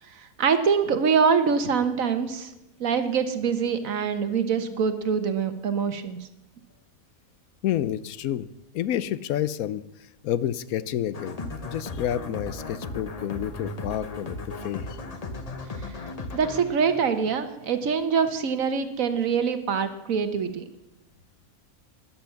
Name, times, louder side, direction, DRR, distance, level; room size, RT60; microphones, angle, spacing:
voice 1, 0.2-2.5 2.8-6.2 16.3-20.6, right 6 dB, 70° right, 10 dB, 1.5 m, -24 dB
voice 2, 7.6-8.5 8.7-9.8 10.2-11.4 11.6-15.0, left 11 dB, 80° left, 16 dB, 1.1 m, -29 dB
sound 1, 11.1-17.9, left 2 dB, 30° left, 0.9 m, -37 dB
13.0 x 10.5 x 5.8 m, 0.94 s
omnidirectional pair, 1.5 m